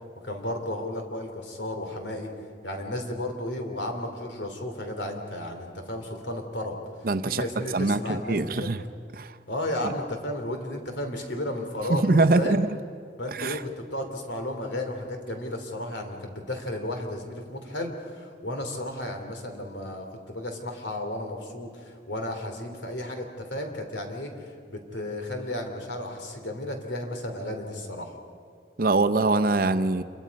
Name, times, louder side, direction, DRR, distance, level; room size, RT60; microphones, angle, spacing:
voice 1, 0.2-2.3 2.6-6.8 7.2-8.7 9.5-12.6 13.2-24.3 24.7-28.1, left 1 dB, 85° left, 4 dB, 2.8 m, -33 dB
voice 2, 7.0-8.8 9.1-9.4 9.8-9.9 11.9-12.7 13.3-13.6 28.8-30.0, right 3 dB, 50° right, 9 dB, 0.7 m, -23 dB
27.0 x 22.5 x 5.3 m, 2.3 s
head